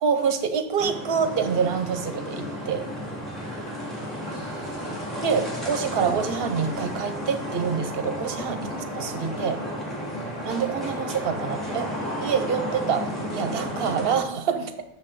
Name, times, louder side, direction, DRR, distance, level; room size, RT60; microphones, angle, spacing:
voice 1, 0.0-2.9 5.2-8.7 8.9-9.6 10.4-14.8, right 6 dB, 70° right, 8 dB, 0.9 m, -26 dB
sound 1, 0.8-14.2, equal, ahead, 1.9 m, -32 dB
voice 2, 3.3-5.1 5.9-6.1 8.7-8.8 10.1-10.3, left 1 dB, 45° left, -4 dB, 2.3 m, -44 dB
6.8 x 5.3 x 4.1 m, 0.83 s
omnidirectional pair, 1.0 m